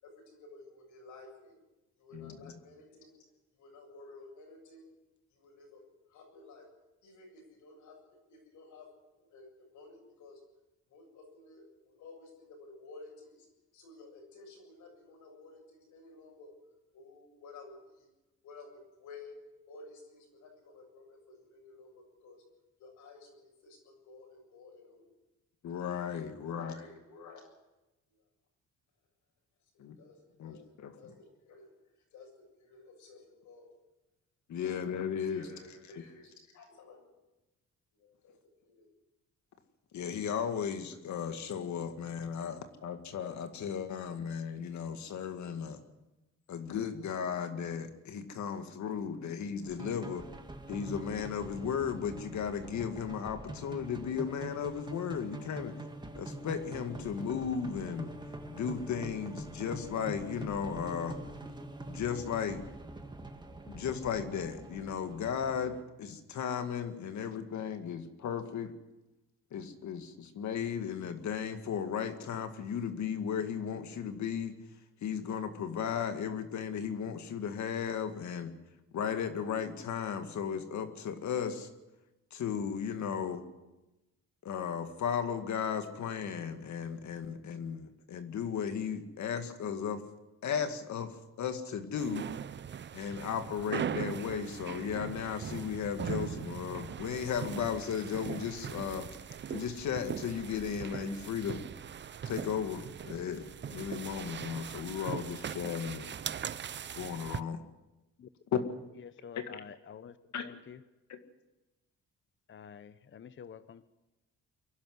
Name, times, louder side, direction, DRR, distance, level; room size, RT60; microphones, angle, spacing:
voice 1, 0.0-1.6 2.0-3.2 3.6-4.9 5.3-6.7 7.0-10.4 10.9-13.5 13.7-16.6 16.9-18.1 18.4-19.4 19.7-22.4 22.8-25.1 26.3-27.5 28.1-28.2 29.6-31.8 32.1-33.7 34.6-34.7 35.0-37.1 37.9-38.3 38.6-38.9, left 3 dB, 85° left, 2 dB, 7.6 m, -54 dB
voice 2, 25.6-26.7 29.8-30.0 30.4-30.9 34.5-35.5 39.9-45.8 46.5-50.2 50.7-55.7 56.2-58.1 58.5-61.2 61.9-62.6 63.7-68.7 69.5-74.6 75.0-78.5 78.9-81.7 82.3-83.4 84.4-90.0 90.4-92.3 92.9-99.1 99.5-101.6 102.3-106.1 106.9-107.6 108.5-108.6 109.4-109.5 110.3-110.4 111.1-111.2, left 7 dB, 70° left, 7 dB, 2.1 m, -35 dB
sound 1, 49.6-65.8, right 1 dB, 15° right, 1.9 m, -44 dB
sound 2, 92.0-107.4, right 8 dB, 40° right, 0.6 m, -40 dB
voice 3, 109.0-110.2 110.4-110.8 112.5-113.9, left 7 dB, 40° left, 14 dB, 0.8 m, -49 dB
23.5 x 11.5 x 9.6 m, 1.0 s
cardioid pair, 90°, 30 cm